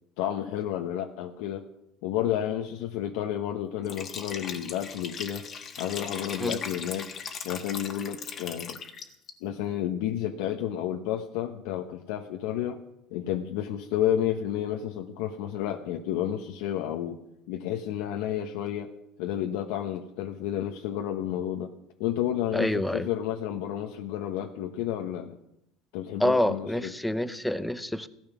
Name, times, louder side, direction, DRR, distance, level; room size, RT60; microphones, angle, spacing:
voice 1, 0.2-1.6 2.0-5.5 5.8-7.1 7.4-8.8 9.4-12.8 13.1-17.2 17.5-18.9 19.2-21.7 22.0-25.4 25.9-26.9, left 11 dB, 75° left, 4 dB, 1.1 m, -31 dB
Liquid, 3.8-9.3, left 6 dB, 30° left, 1.5 m, -39 dB
voice 2, 22.5-23.1 26.2-28.1, left 1 dB, 5° left, 13 dB, 0.7 m, -27 dB
17.0 x 13.0 x 6.1 m, 0.82 s
cardioid pair, 155°, 0 cm